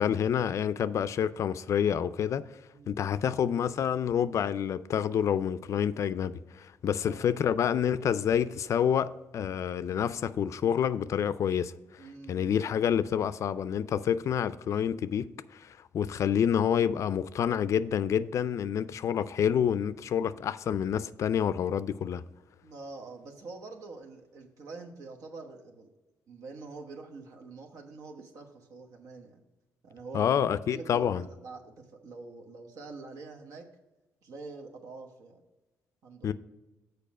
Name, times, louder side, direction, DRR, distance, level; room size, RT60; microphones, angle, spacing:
voice 1, 0.0-2.4 2.9-11.7 12.3-22.2 30.1-31.2 36.2-36.3, left 8 dB, 60° left, 0.4 m, -28 dB
voice 2, 7.0-7.3 12.0-12.6 22.6-25.9 26.3-29.4 29.8-30.3 30.7-33.7 34.2-35.4 36.0-36.3, right 3 dB, 75° right, 1.1 m, -45 dB
6.9 x 4.7 x 6.1 m
supercardioid pair, 70°, 6 cm